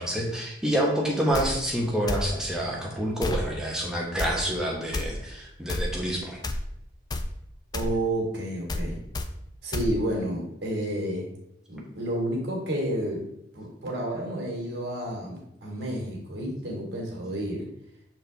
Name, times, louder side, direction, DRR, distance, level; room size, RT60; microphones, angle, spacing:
voice 1, 0.0-6.4, right 1 dB, 5° right, -2 dB, 1.0 m, -28 dB
sound 1, 1.3-1.5 2.1-2.3 3.2-3.4 4.2-4.3 4.9-5.1 5.7-5.9 6.4-6.6 7.1-7.3 7.7-7.9 8.7-8.9 9.1-9.3 9.7-9.9, left 2 dB, 20° left, 0.3 m, -29 dB
voice 2, 7.7-9.0 9.6-11.3 11.7-13.3 13.5-17.6, right 1 dB, 55° right, -2 dB, 1.9 m, -30 dB
6.5 x 4.3 x 3.4 m, 0.81 s
head